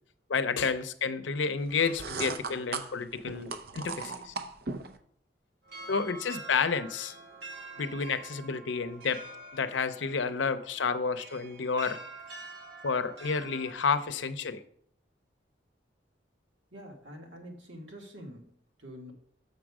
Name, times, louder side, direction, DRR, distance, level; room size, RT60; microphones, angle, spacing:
voice 1, 0.3-4.3 5.9-7.1 7.8-9.2 9.5-12.0 12.8-14.6, left 5 dB, 80° left, 11 dB, 0.6 m, -30 dB
sound 1, 1.7-5.0, right 4 dB, 55° right, 0.6 m, -38 dB
sound 2, 5.6-13.7, right 3 dB, 70° right, 1.7 m, -46 dB
voice 2, 16.7-19.1, equal, 85° right, 1 dB, 1.8 m, -46 dB
6.7 x 6.2 x 4.8 m, 0.66 s
head